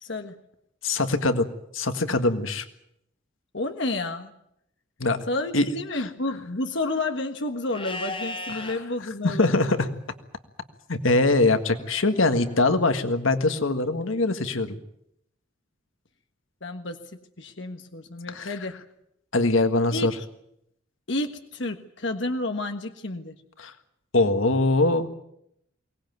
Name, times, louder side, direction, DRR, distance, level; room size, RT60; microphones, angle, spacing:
voice 1, 0.0-0.3 3.5-4.3 5.3-9.8 16.6-17.0 17.4-18.8 19.9-20.1 21.1-23.3, left 2 dB, 65° left, 6 dB, 1.5 m, -30 dB
voice 2, 0.8-1.5 1.7-2.6 5.0-5.2 5.5-5.7 8.6-8.7 9.2-9.8 10.9-14.8 18.3-18.5 19.3-20.1 23.6-23.7 24.1-25.1, left 2 dB, 85° left, 9 dB, 1.8 m, -22 dB
Livestock farm animals working animals, 7.7-8.7 11.6-12.6, left 2 dB, 30° left, 4.8 m, -36 dB
23.0 x 19.0 x 9.4 m, 0.77 s
head